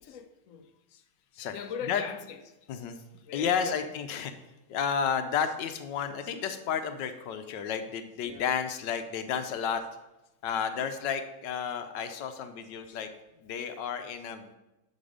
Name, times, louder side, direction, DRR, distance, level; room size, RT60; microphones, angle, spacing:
voice 1, 0.1-0.7 1.5-2.4 3.2-3.9 8.2-8.5 10.7-11.0, left 7 dB, 85° left, 7 dB, 0.7 m, -41 dB
voice 2, 3.3-4.3 4.7-9.8 10.4-13.1 13.4-14.5, left 7 dB, 70° left, 8 dB, 1.2 m, -31 dB
8.1 x 6.1 x 5.1 m, 1.0 s
omnidirectional pair, 2.3 m